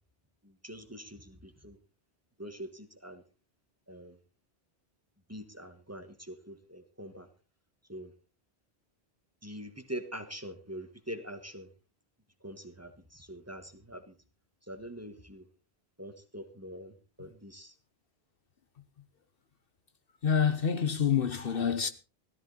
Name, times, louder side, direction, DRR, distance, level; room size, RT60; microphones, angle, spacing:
voice 1, 0.4-1.8 2.4-3.2 3.9-4.2 5.3-7.3 7.9-8.1 9.4-11.7 12.4-14.1 14.6-15.5 16.0-17.7, equal, 15° right, 1.5 m, -44 dB
voice 2, 20.2-21.9, left 7 dB, 60° left, 1.1 m, -27 dB
16.5 x 13.5 x 4.1 m
omnidirectional pair, 1.1 m